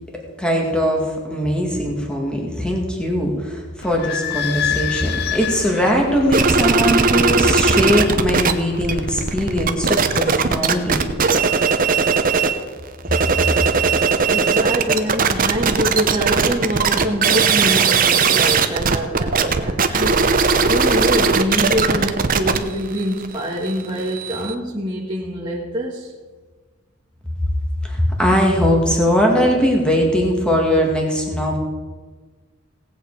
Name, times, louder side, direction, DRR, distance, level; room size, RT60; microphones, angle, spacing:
voice 1, 0.4-11.1 27.8-31.6, equal, 5° left, 0 dB, 2.1 m, -20 dB
Idling / Squeak, 3.8-10.2, left 8 dB, 50° left, 0.6 m, -29 dB
sound 1, 6.3-8.5 8.8-12.6 13.0-24.5, right 5 dB, 40° right, 0.8 m, -18 dB
voice 2, 14.3-20.2 20.7-26.1, equal, 20° right, -5 dB, 1.5 m, -24 dB
18.0 x 8.3 x 4.9 m, 1.4 s
head